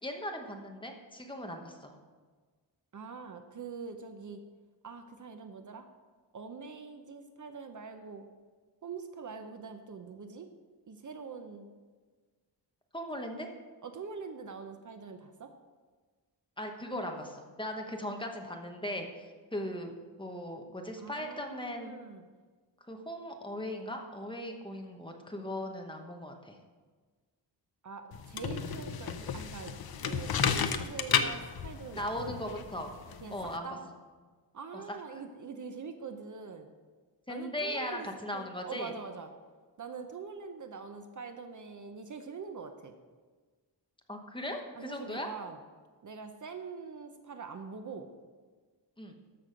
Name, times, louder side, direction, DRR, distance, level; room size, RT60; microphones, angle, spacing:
voice 1, 0.0-1.9 12.9-13.5 16.6-19.9 20.2-21.9 22.9-26.6 32.0-32.9 33.3-33.7 35.1-35.2 37.3-38.9 44.1-45.3 49.0-49.2, left 1 dB, 10° left, 3 dB, 1.0 m, -38 dB
voice 2, 2.9-4.4 4.8-5.9 6.3-8.3 8.8-10.5 10.9-11.7 13.2-13.5 13.8-15.5 21.0-22.2 27.8-29.8 30.0-32.3 33.2-33.4 33.6-33.8 34.5-36.7 37.3-38.1 38.3-39.3 39.8-42.9 44.8-45.6 46.0-48.1, right 5 dB, 45° right, 7 dB, 0.7 m, -44 dB
sound 1, 28.1-33.6, left 7 dB, 60° left, 0.7 m, -33 dB
13.5 x 6.2 x 5.1 m, 1.4 s
wide cardioid pair, 160°, 41 cm